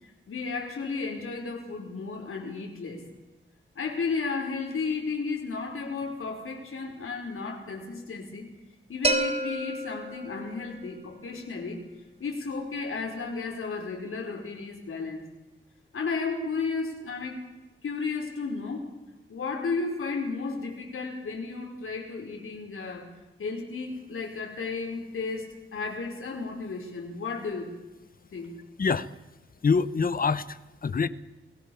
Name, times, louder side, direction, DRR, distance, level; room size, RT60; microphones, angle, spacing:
voice 1, 0.0-3.1 3.7-8.4 8.9-11.8 12.2-15.3 15.9-17.4 17.8-18.9 19.3-23.1 23.4-27.7 28.3-28.5, left 4 dB, 85° left, 2 dB, 5.0 m, -33 dB
sound 1, 9.0-10.9, right 2 dB, 30° right, 2.7 m, -29 dB
voice 2, 28.8-29.1 29.6-31.1, left 5 dB, 45° left, 15 dB, 1.1 m, -25 dB
29.0 x 19.0 x 7.2 m, 1.1 s
wide cardioid pair, 175°, 21 cm